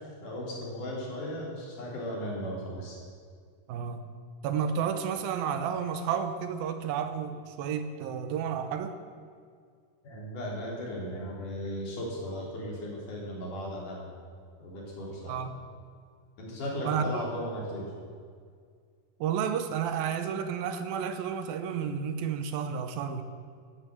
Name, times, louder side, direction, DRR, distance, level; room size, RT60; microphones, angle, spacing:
voice 1, 0.0-3.0 10.0-14.1 14.6-15.4 16.4-17.9, equal, 60° left, -3 dB, 4.8 m, -36 dB
voice 2, 3.7-4.0 4.4-8.9 15.3-15.6 16.9-17.2 19.2-23.2, right 7 dB, 80° right, 9 dB, 2.6 m, -31 dB
15.0 x 10.0 x 7.7 m, 2.1 s
omnidirectional pair, 4.3 m